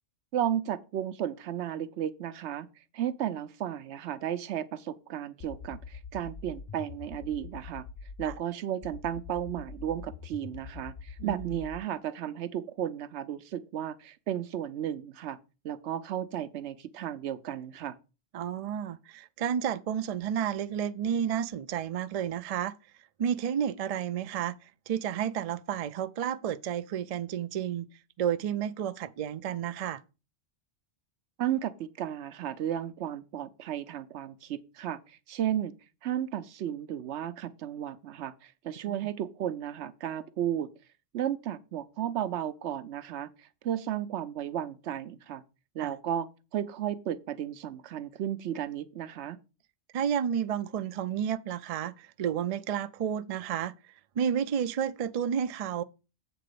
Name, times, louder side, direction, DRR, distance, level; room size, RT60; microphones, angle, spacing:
voice 1, 0.3-2.7 2.9-7.9 8.2-15.4 15.6-18.0 31.4-35.7 36.0-40.7 41.1-45.4 45.7-49.4, right 10 dB, 85° right, 0.9 m, -34 dB
sound 1, 5.4-8.4 8.8-11.8, left 5 dB, 55° left, 0.4 m, -44 dB
voice 2, 11.2-11.6 18.3-22.8 23.2-27.9 28.2-30.0 38.8-38.9 45.8-45.9 49.9-55.8, right 9 dB, 60° right, 0.4 m, -31 dB
8.0 x 3.8 x 6.7 m
omnidirectional pair, 1.1 m